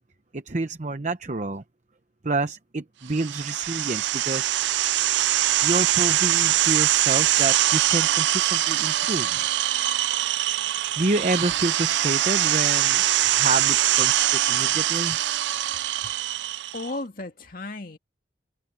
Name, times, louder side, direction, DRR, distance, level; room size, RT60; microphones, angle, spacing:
voice 1, 0.3-1.6 2.2-4.5 5.6-9.4 11.0-15.3, right 2 dB, 40° right, 0.8 m, -28 dB
Circular saw, 3.1-16.9, right 13 dB, 75° right, 0.4 m, -23 dB
voice 2, 16.7-18.0, left 2 dB, 50° left, 2.2 m, -34 dB
head